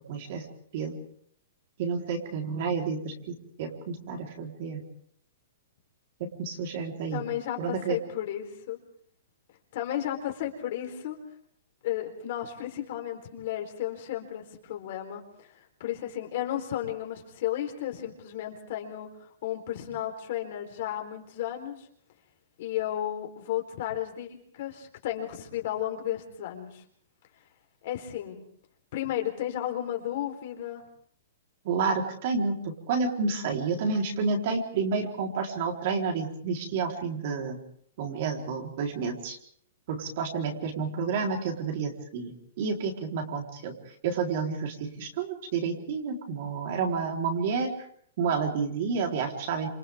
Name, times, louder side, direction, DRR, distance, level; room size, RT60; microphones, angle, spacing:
voice 1, 0.1-0.5 0.7-1.0 1.8-4.8 6.2-7.2 7.6-8.0 31.6-37.6 38.0-39.4 39.9-47.7 48.2-49.7, right 5 dB, 40° right, 2 dB, 4.1 m, -30 dB
voice 2, 7.1-8.8 9.7-11.2 11.8-21.9 22.6-26.8 27.8-28.4 28.9-30.8, left 12 dB, 40° left, 3 dB, 4.1 m, -33 dB
29.5 x 28.0 x 3.7 m, 0.62 s
hypercardioid pair, 175°, 0 cm